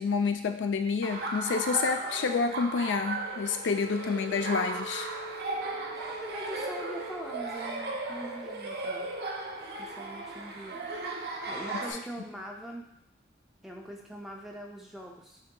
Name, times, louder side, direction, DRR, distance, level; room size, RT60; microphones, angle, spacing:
voice 1, 0.0-5.1 11.7-11.8, left 5 dB, 85° left, 6 dB, 0.4 m, -29 dB
Laughter, 1.0-11.9, right 3 dB, 55° right, 0.5 m, -36 dB
Wind instrument woodwind instrument, 3.7-8.1, right 2 dB, 60° left, 0.9 m, -43 dB
voice 2, 6.1-9.1 9.8-10.8 11.1-12.9 13.6-15.4, equal, ahead, -1 dB, 0.4 m, -43 dB
6.4 x 2.7 x 2.2 m, 0.79 s
head